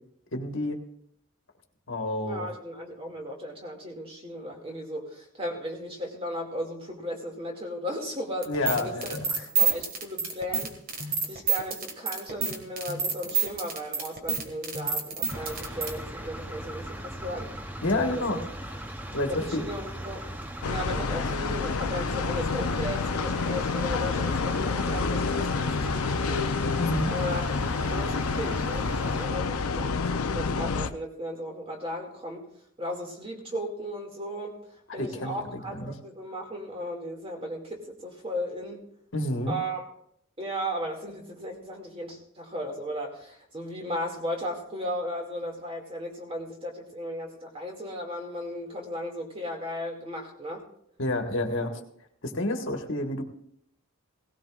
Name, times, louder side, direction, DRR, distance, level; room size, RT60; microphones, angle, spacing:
voice 1, 0.3-0.8 1.9-2.5 8.5-9.4 17.8-18.4 19.1-19.6 26.8-27.1 35.0-35.9 39.1-39.5 51.0-51.7 52.2-53.2, left 1 dB, 60° left, 4 dB, 1.5 m, -29 dB
voice 2, 2.2-8.5 8.8-9.2 9.6-17.6 17.9-18.4 19.3-20.2 20.7-26.8 27.1-27.4 27.7-32.5 32.8-34.6 34.9-38.9 39.5-39.8 40.4-50.6 51.6-51.8, equal, 25° right, 1 dB, 2.2 m, -36 dB
sound 1, 8.4-15.9, right 6 dB, 40° right, 1.8 m, -28 dB
sound 2, 15.3-29.3, right 1 dB, 10° right, 0.7 m, -39 dB
sound 3, 20.6-30.9, left 4 dB, 90° left, 0.7 m, -28 dB
17.5 x 17.0 x 2.5 m, 0.68 s
head